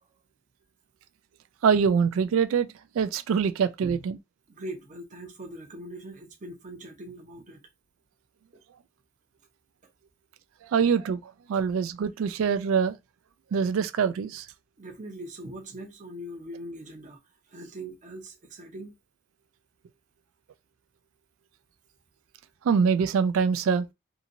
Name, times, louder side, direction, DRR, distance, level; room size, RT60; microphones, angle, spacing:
voice 1, 1.6-2.7 2.9-4.2 10.6-13.0 13.5-14.5 22.6-23.8, right 6 dB, 90° right, 0.3 m, -24 dB
voice 2, 4.5-7.6 14.8-17.2 17.5-19.0, right 1 dB, 40° right, 0.7 m, -41 dB
2.8 x 2.8 x 2.5 m
head